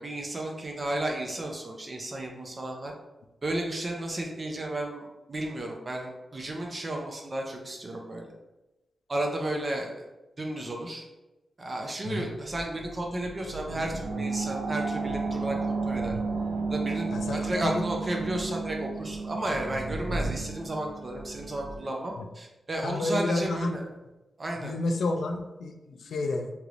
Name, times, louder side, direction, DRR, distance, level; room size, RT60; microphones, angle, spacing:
voice 1, 0.0-2.9 3.4-8.3 9.1-10.1 10.4-11.1 11.6-16.2 16.7-23.8 24.4-24.7, right 1 dB, 30° right, 1 dB, 0.5 m, -33 dB
sound 1, 12.5-21.9, right 3 dB, 90° right, 0.5 m, -33 dB
voice 2, 17.1-17.8 22.2-22.3 22.8-23.8 24.6-26.5, left 2 dB, 85° left, 4 dB, 0.4 m, -30 dB
3.2 x 2.9 x 2.5 m, 1.0 s
wide cardioid pair, 150°, 0 cm